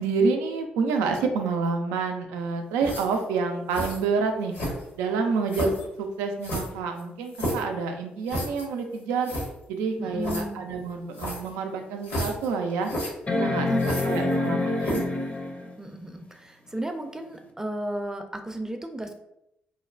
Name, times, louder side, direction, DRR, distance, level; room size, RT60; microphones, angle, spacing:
voice 1, 0.0-4.5 5.0-9.3 9.7-12.9 13.3-15.0, right 4 dB, 85° right, 4 dB, 0.3 m, -28 dB
sound 1, 2.8-3.2 3.7-4.0 4.5-5.0 5.5-5.9 6.4-7.7 8.3-8.7 9.0-9.1 9.2-9.5 10.2-10.4 11.1-11.5 12.0-12.5 12.8-13.1 13.8-14.5 14.8-15.2, equal, 75° left, 1.0 m, -31 dB
voice 2, 10.0-10.6 13.7-14.4 15.8-19.1, right 1 dB, 15° right, 5 dB, 0.5 m, -34 dB
sound 2, 11.1-11.2 11.8-11.9 13.3-15.7 17.5-17.6, left 2 dB, 35° left, 0.6 m, -26 dB
3.0 x 2.1 x 2.4 m, 0.82 s
hypercardioid pair, 45°, 4 cm